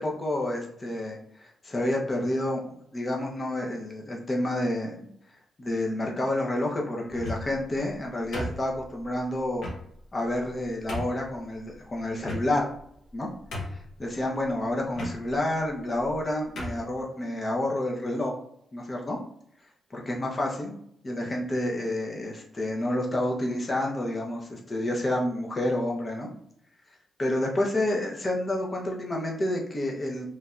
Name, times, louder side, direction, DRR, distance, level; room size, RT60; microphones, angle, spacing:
voice 1, 0.0-5.1 5.6-9.7 10.1-12.7 13.1-13.3 14.0-18.3 18.7-19.2 19.9-20.7 21.0-26.3 27.2-30.3, left 1 dB, 30° left, -1 dB, 0.7 m, -29 dB
sound 1, 7.1-7.6 8.3-9.0 9.6-9.8 10.4-10.5 10.9-11.2 12.2-12.8 13.1-13.2 13.5-14.0 14.9-15.2 16.0-16.1 16.5-16.9, left 1 dB, 75° left, 0.9 m, -35 dB
3.2 x 2.7 x 2.3 m, 0.70 s
cardioid pair, 105°, 0 cm